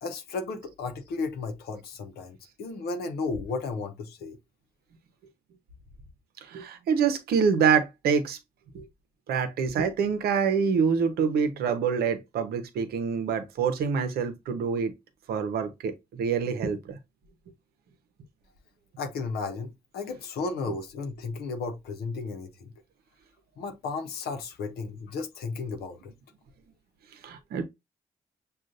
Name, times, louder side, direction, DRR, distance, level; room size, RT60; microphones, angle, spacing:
voice 1, 0.0-4.4 19.0-22.7 23.6-26.1, left 4 dB, 85° left, 0.8 m, -34 dB
voice 2, 6.5-8.4 8.7-8.8 9.3-14.9 15.3-15.9 16.2-16.8 27.2-27.6, right 6 dB, 80° right, 0.7 m, -26 dB
6.3 x 2.4 x 2.5 m
supercardioid pair, 50°, 16 cm